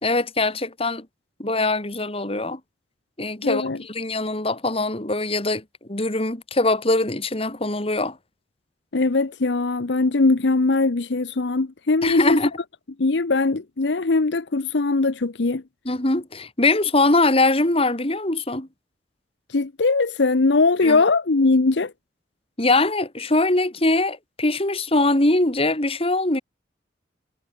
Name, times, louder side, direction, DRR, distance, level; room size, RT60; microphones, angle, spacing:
voice 1, 0.0-1.1 1.4-2.6 3.2-5.6 5.9-8.2 12.0-12.5 15.9-18.7 20.8-21.0 22.6-26.4, left 2 dB, 35° left, 2.7 m, -22 dB
voice 2, 3.4-3.8 8.9-12.4 13.0-15.6 19.5-21.9, left 3 dB, 80° left, 0.8 m, -21 dB
head